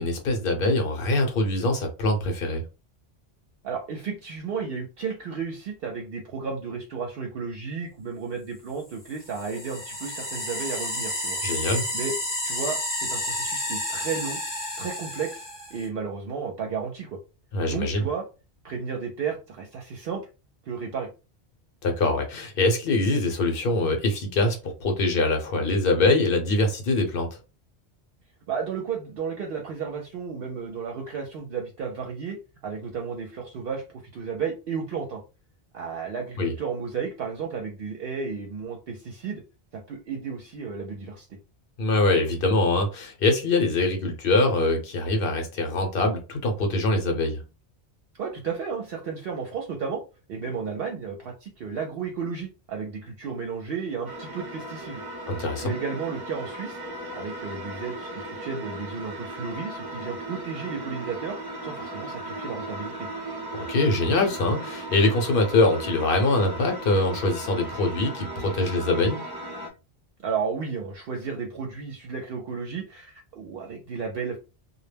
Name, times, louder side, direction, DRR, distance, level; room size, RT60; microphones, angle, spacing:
voice 1, 0.0-2.6 11.4-11.8 17.5-18.1 21.8-27.4 36.4-36.5 41.8-47.4 55.3-55.7 63.5-69.2, left 2 dB, 60° left, 0.9 m, -23 dB
voice 2, 3.6-11.4 11.9-12.2 12.4-14.4 14.8-15.5 15.7-17.2 17.7-18.2 18.6-20.2 20.7-21.1 28.5-32.4 32.6-33.8 34.1-35.2 35.7-39.4 39.7-41.3 48.2-50.0 50.3-55.0 55.6-56.8 57.1-61.4 61.6-63.1 70.2-74.4, right 5 dB, 65° right, 0.7 m, -33 dB
sound 1, 9.1-15.9, left 1 dB, 20° left, 0.6 m, -31 dB
sound 2, 54.0-69.7, right 1 dB, 30° right, 0.5 m, -37 dB
2.2 x 2.1 x 3.3 m
omnidirectional pair, 1.1 m